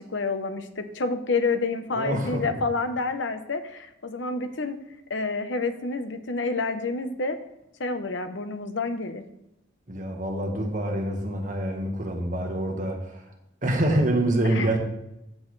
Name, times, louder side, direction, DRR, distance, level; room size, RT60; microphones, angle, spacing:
voice 1, 0.0-4.8 5.1-7.4 7.8-9.2 14.4-14.7, left 3 dB, 80° left, 8 dB, 0.9 m, -28 dB
voice 2, 1.9-2.6 9.9-13.2 13.6-14.8, right 1 dB, 45° right, 2 dB, 1.5 m, -26 dB
14.5 x 6.3 x 3.3 m, 0.86 s
head